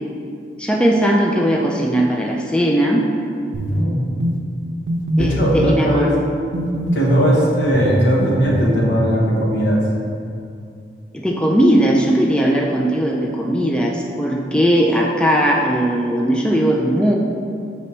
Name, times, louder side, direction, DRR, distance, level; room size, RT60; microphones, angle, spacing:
voice 1, 0.6-3.0 5.2-6.1 11.1-17.1, equal, 5° left, -1 dB, 0.3 m, -18 dB
sound 1, 3.5-3.8 4.2-4.4 4.9-5.6 6.5-7.3 7.7-8.7, right 1 dB, 85° right, 0.5 m, -22 dB
voice 2, 3.7-4.2 5.2-6.1 6.9-9.8, equal, 80° left, -4 dB, 1.3 m, -18 dB
5.4 x 4.1 x 4.4 m, 2.5 s
head